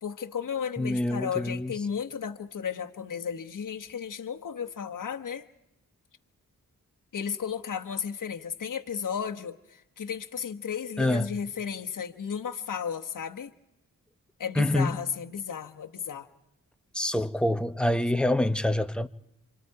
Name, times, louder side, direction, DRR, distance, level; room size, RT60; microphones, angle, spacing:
voice 1, 0.0-5.5 7.1-13.5 14.4-16.3, left 7 dB, 65° left, 1.2 m, -34 dB
voice 2, 0.8-1.7 11.0-11.3 14.6-15.0 16.9-19.1, left 1 dB, 5° left, 0.9 m, -26 dB
27.0 x 25.5 x 4.8 m
cardioid pair, 60°, 34 cm